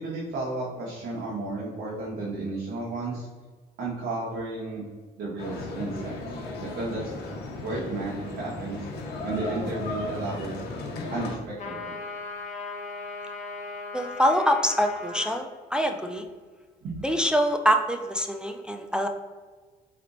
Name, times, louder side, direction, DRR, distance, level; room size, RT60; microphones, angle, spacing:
voice 1, 0.0-3.3 3.8-4.8 5.2-6.2 6.6-7.0 7.6-8.9 9.2-10.5 11.1-11.9 16.8-17.0, right 2 dB, 65° right, -5 dB, 1.2 m, -33 dB
sound 1, 5.4-11.4, left 2 dB, 75° left, 0.9 m, -35 dB
sound 2, 11.6-15.4, left 3 dB, 45° left, 1.1 m, -37 dB
voice 2, 13.9-16.2 17.0-19.1, equal, 5° right, 4 dB, 0.3 m, -25 dB
3.9 x 3.3 x 3.9 m, 1.4 s
cardioid pair, 110°, 17 cm